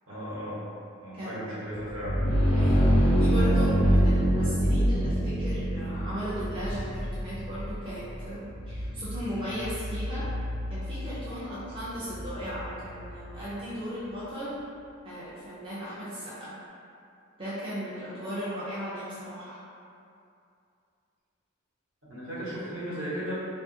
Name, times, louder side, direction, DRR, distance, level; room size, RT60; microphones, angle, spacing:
voice 1, 0.1-0.6 1.0-2.3 22.0-23.3, equal, 65° right, -10 dB, 1.0 m, -36 dB
voice 2, 1.1-1.5 2.5-10.3 10.7-14.6 15.0-16.5 17.4-19.6, equal, 25° right, -11 dB, 0.4 m, -36 dB
sound 1, 1.8-13.4, equal, 80° left, 0.6 m, -26 dB
2.7 x 2.4 x 2.6 m, 2.5 s
head